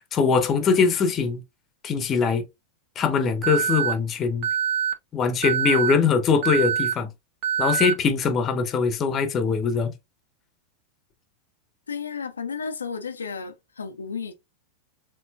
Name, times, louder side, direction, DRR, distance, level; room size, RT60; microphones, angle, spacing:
voice 1, 0.1-1.4 1.8-2.4 3.0-4.5 5.1-7.1 7.6-9.9, left 5 dB, 25° left, 0.8 m, -22 dB
Alarm, 3.4-3.9 4.4-4.9 5.4-5.9 6.4-6.9 7.4-7.9, right 7 dB, 45° right, 1.1 m, -24 dB
voice 2, 11.9-14.3, left 5 dB, 75° left, 0.5 m, -33 dB
4.3 x 3.7 x 2.4 m
figure-of-eight pair, 90°, 0 cm